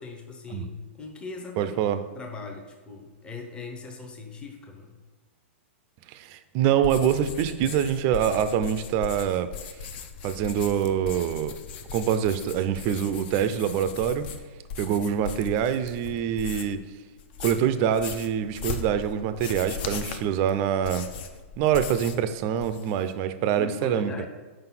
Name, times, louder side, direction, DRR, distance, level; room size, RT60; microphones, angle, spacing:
voice 1, 0.0-1.8 2.1-5.0 23.5-24.3, left 4 dB, 15° left, 2 dB, 0.7 m, -39 dB
voice 2, 1.6-2.0 6.1-9.5 10.2-11.6 11.9-14.3 14.8-16.8 17.4-21.1 21.6-24.3, right 9 dB, 35° right, 11 dB, 0.4 m, -25 dB
sound 1, 6.8-16.8 17.2-22.3 22.5-23.1, left 6 dB, 50° left, 0.6 m, -38 dB
5.0 x 3.9 x 5.8 m, 1.3 s
hypercardioid pair, 145°, 7 cm